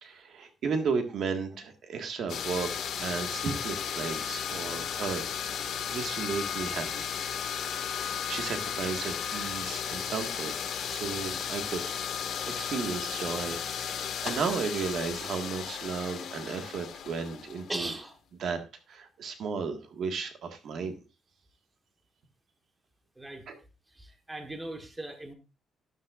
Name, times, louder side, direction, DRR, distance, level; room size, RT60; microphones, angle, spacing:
voice 1, 0.0-2.7 3.0-7.1 7.8-10.5 10.9-12.0 12.5-17.9 18.4-18.6 18.9-21.0 23.5-23.6, right 5 dB, 55° right, 6 dB, 1.7 m, -34 dB
sound 1, 2.3-18.0, left 8 dB, 60° left, 1.8 m, -34 dB
voice 2, 17.7-18.1 23.2-23.5 23.9-25.3, right 1 dB, 10° right, 5 dB, 1.3 m, -38 dB
12.5 x 11.0 x 2.5 m, 0.29 s
cardioid pair, 170°, 0 cm